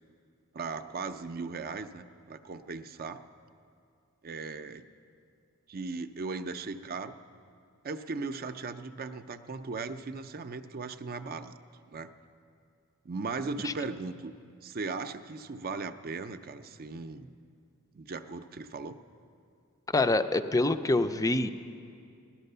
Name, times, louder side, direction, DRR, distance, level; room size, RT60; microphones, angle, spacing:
voice 1, 0.5-3.2 4.2-4.8 5.7-7.1 7.8-11.6 11.9-12.1 13.0-14.3 14.6-17.3 17.9-19.0, right 4 dB, 45° right, 9 dB, 0.5 m, -37 dB
voice 2, 19.9-21.5, left 2 dB, 15° left, 9 dB, 0.5 m, -25 dB
16.5 x 12.5 x 6.7 m, 2.4 s
head